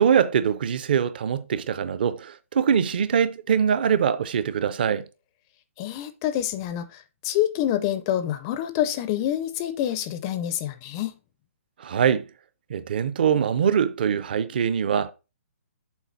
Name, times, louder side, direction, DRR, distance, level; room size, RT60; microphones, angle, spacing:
voice 1, 0.0-5.1 11.8-12.2 12.7-15.1, right 8 dB, 40° right, 0.5 m, -23 dB
voice 2, 5.8-11.1, left 11 dB, 15° left, 0.4 m, -27 dB
7.2 x 4.7 x 3.9 m
hypercardioid pair, 170°, 8 cm